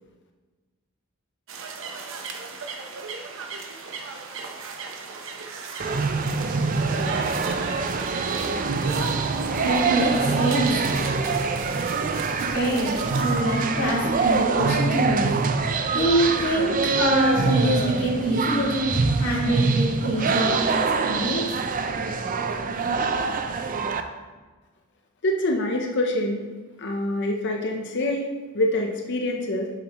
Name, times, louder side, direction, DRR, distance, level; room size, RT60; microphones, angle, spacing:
sound 1, 1.5-13.4, right 4 dB, 65° right, 0.9 m, -36 dB
sound 2, 5.8-24.0, right 4 dB, 40° right, 0.5 m, -25 dB
voice 1, 9.6-10.7 12.5-15.3 15.9-20.6 21.0-21.5, right 1 dB, 85° left, -5 dB, 2.6 m, -24 dB
voice 2, 25.2-26.5 26.8-28.3 28.5-29.7, left 1 dB, 55° left, 2 dB, 0.8 m, -25 dB
8.8 x 7.5 x 3.0 m, 1.3 s
head